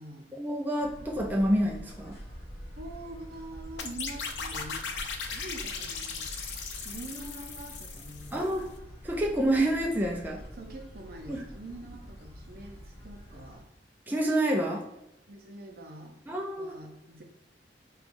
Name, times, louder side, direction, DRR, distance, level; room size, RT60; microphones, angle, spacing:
voice 1, 0.3-2.2 8.3-8.7 9.0-10.4 11.3-11.4 14.1-14.8 16.3-16.7, right 1 dB, 10° right, -1 dB, 0.4 m, -28 dB
sound 1, 0.8-13.6, equal, 35° left, 0.9 m, -46 dB
voice 2, 2.8-4.8 5.2-6.3 6.8-8.7 10.5-13.7 15.3-17.2, right 1 dB, 60° right, 3 dB, 0.6 m, -45 dB
sound 2, 3.8-8.6, left 5 dB, 85° left, 0.5 m, -38 dB
4.6 x 2.3 x 2.5 m, 0.88 s
head